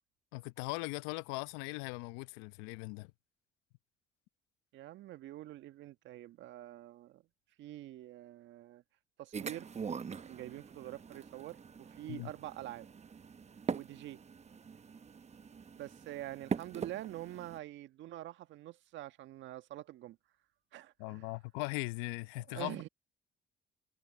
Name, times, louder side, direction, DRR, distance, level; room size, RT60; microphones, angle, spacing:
voice 1, 0.3-3.1 12.1-12.3 21.0-22.9, left 24 dB, 80° left, 0.9 m, -39 dB
voice 2, 4.7-7.2 7.6-8.8 9.2-9.7 10.2-12.9 13.7-14.2 15.8-20.2 20.7-21.3 22.4-22.9, right 14 dB, 70° right, 1.6 m, -46 dB
sound 1, 9.3-17.6, right 6 dB, 35° right, 1.0 m, -43 dB
hypercardioid pair, 55°, 20 cm